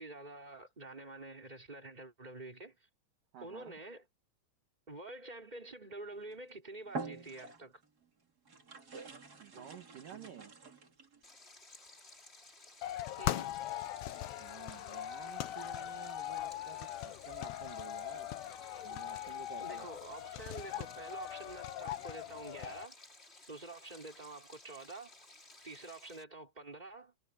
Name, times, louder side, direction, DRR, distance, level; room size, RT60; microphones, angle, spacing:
voice 1, 0.0-2.8 3.4-4.0 4.9-7.8 13.2-13.5 19.6-23.0 23.5-25.1 25.6-27.1, right 2 dB, 10° right, 4.7 m, -48 dB
voice 2, 3.3-3.7 9.3-10.5 14.4-18.3 18.8-19.9, right 9 dB, 60° right, 3.0 m, -52 dB
sound 1, 6.2-6.4 6.9-7.9 8.4-11.2, right 4 dB, 25° right, 2.4 m, -46 dB
Stream, 11.2-26.2, left 2 dB, 15° left, 3.0 m, -57 dB
sound 2, 12.8-22.9, left 13 dB, 80° left, 3.0 m, -40 dB
omnidirectional pair, 5.0 m